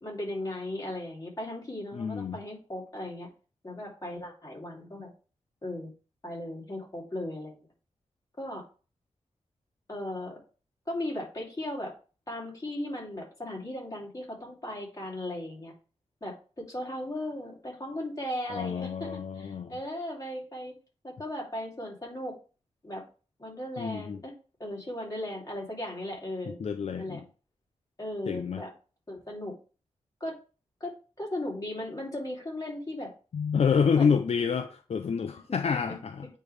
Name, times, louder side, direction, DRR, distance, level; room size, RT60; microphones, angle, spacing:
voice 1, 0.0-3.3 3.6-5.1 5.6-5.9 6.2-7.6 8.4-8.6 9.9-10.4 10.9-11.9 12.3-15.7 16.2-19.1 19.3-20.7 21.0-22.3 22.8-23.0 23.4-24.3 24.6-26.6 27.0-27.2 28.0-28.7 29.1-29.5 30.2-30.3 30.8-33.1 33.9-34.2, left 1 dB, 30° left, 2.8 m, -37 dB
voice 2, 1.9-2.4 18.5-19.8 23.8-24.2 26.5-27.2 28.3-28.6 33.3-36.3, left 6 dB, 65° left, 0.5 m, -28 dB
9.0 x 3.3 x 3.3 m
cardioid pair, 70°, 11 cm